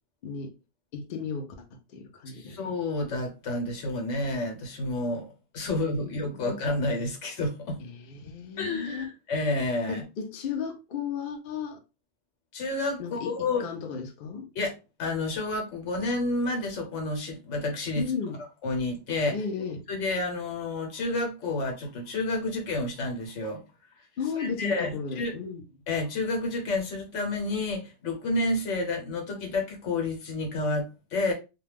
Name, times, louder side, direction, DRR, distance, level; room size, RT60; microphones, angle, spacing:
voice 1, 0.2-0.5 0.9-1.6 1.9-2.6 6.0-6.6 7.8-9.1 9.9-11.8 13.0-14.5 18.0-18.4 19.3-19.8 24.2-25.6, left 6 dB, 55° left, 0.6 m, -34 dB
voice 2, 2.3-7.8 8.6-10.0 12.5-13.6 14.5-14.7 15.0-18.0 18.6-19.4 19.9-23.6 24.4-25.4 25.9-31.3, left 2 dB, 85° left, 1.2 m, -30 dB
2.3 x 2.2 x 3.2 m
omnidirectional pair, 1.2 m